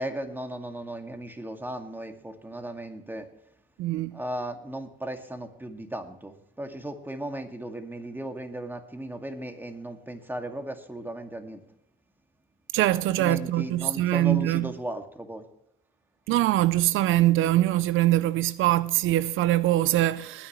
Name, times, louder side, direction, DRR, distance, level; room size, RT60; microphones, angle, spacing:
voice 1, 0.0-3.3 4.1-11.6 13.2-15.5, right 1 dB, 10° right, 2.1 m, -36 dB
voice 2, 3.8-4.2 12.7-14.7 16.3-20.5, right 15 dB, 85° right, 0.5 m, -23 dB
20.0 x 10.0 x 3.1 m
cardioid pair, 90°, 20 cm